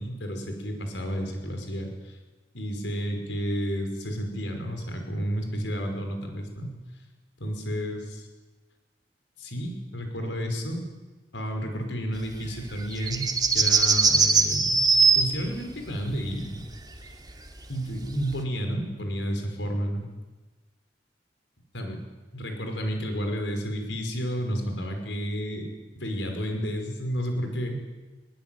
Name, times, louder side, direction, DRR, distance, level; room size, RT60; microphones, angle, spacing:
voice 1, 0.0-2.2 2.5-6.7 7.4-8.3 9.4-10.9 11.3-14.9 15.2-16.6 17.0-17.1 17.7-20.0 21.7-22.0 22.3-25.7 26.0-27.8, equal, 85° left, 4 dB, 5.4 m, -31 dB
sound 1, 12.6-15.2 17.3-17.4 18.3-18.4, right 4 dB, 25° right, 2.3 m, -20 dB
21.0 x 20.5 x 9.4 m, 1.2 s
head